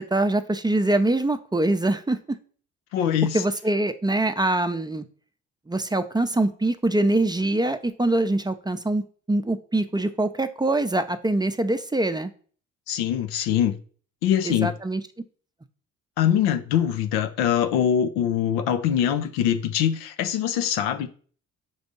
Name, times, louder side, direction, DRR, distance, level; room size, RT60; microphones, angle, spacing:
voice 1, 0.0-2.4 3.3-5.0 5.7-12.3 14.4-15.0, right 2 dB, 10° right, 0.6 m, -24 dB
voice 2, 2.9-3.4 12.9-13.7 14.2-14.7 16.2-21.1, left 9 dB, 75° left, 0.6 m, -23 dB
5.4 x 3.4 x 5.3 m
hypercardioid pair, 50°, 38 cm